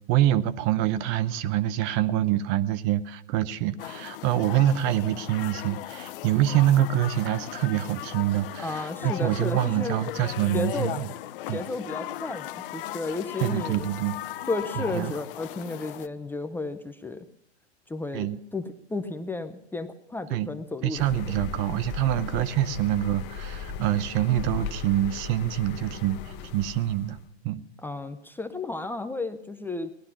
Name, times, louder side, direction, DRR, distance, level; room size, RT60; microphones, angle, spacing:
voice 1, 0.1-11.1 11.5-11.6 13.4-14.2 14.8-15.1 18.1-18.4 20.3-20.5 20.8-27.2 27.4-27.6, right 12 dB, 35° right, 15 dB, 0.8 m, -25 dB
sound 1, 3.8-16.1, left 14 dB, 55° left, 0.7 m, -37 dB
voice 2, 8.6-10.0 10.5-11.1 11.5-13.9 14.5-17.3 17.9-18.6 18.9-21.3 27.8-29.9, left 3 dB, 5° left, 9 dB, 0.6 m, -33 dB
sound 2, 20.9-27.2, left 7 dB, 30° left, 1.1 m, -37 dB
18.0 x 11.5 x 5.9 m, 0.77 s
hypercardioid pair, 115°, 34 cm